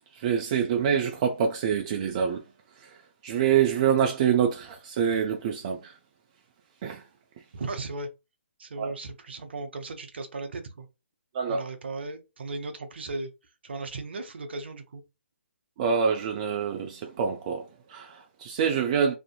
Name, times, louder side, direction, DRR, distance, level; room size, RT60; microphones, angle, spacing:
voice 1, 0.1-2.4 2.8-3.0 3.2-6.0 6.8-7.0 8.8-8.9 11.3-11.6 15.8-19.1, right 7 dB, 30° right, 0.3 m, -26 dB
voice 2, 7.5-8.1 8.6-10.9 11.5-13.3 13.6-15.0, right 3 dB, 55° right, 0.6 m, -36 dB
2.5 x 2.4 x 2.2 m
figure-of-eight pair, 135°, 7 cm